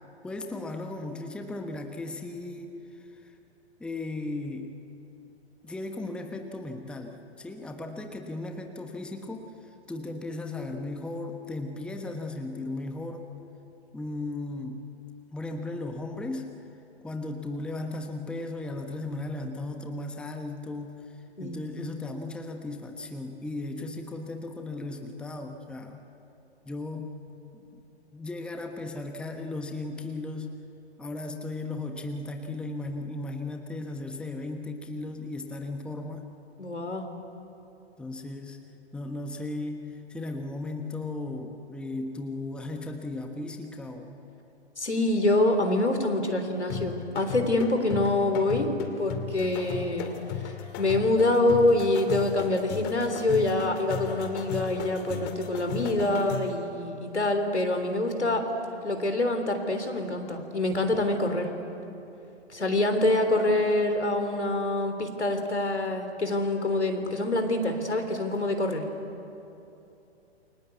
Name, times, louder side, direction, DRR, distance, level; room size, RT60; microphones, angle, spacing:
voice 1, 0.2-3.3 3.8-4.7 5.6-13.3 13.9-14.8 15.3-16.5 17.0-26.0 26.6-27.2 27.5-27.8 28.1-30.6 31.0-36.3 38.0-38.6 38.9-44.2, left 2 dB, 5° left, 5 dB, 1.2 m, -36 dB
voice 2, 36.6-37.1 44.8-50.1 50.8-58.5 58.8-61.5 62.5-68.9, left 2 dB, 80° left, 6 dB, 3.6 m, -26 dB
sound 1, 46.7-56.6, left 8 dB, 30° left, 2.5 m, -36 dB
28.5 x 24.5 x 8.3 m, 2.9 s
figure-of-eight pair, 120°, 33 cm